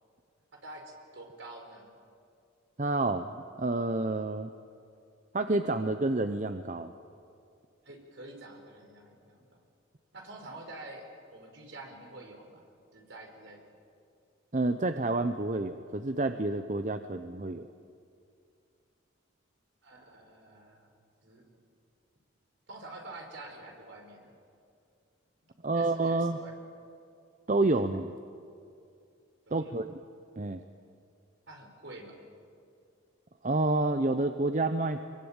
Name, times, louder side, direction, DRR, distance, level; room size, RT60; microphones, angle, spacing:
voice 1, 0.5-2.0 7.8-9.5 10.1-12.6 12.9-13.6 19.8-20.9 21.2-21.4 22.7-24.3 25.6-26.5 29.5-29.8 31.5-32.2, right 2 dB, 60° right, 2 dB, 4.9 m, -47 dB
voice 2, 2.8-4.5 5.3-6.9 14.5-17.7 25.6-26.4 27.5-28.1 29.5-30.0 30.4-30.6 33.4-35.0, right 2 dB, 35° right, 8 dB, 0.7 m, -29 dB
25.0 x 23.0 x 8.9 m, 2.4 s
head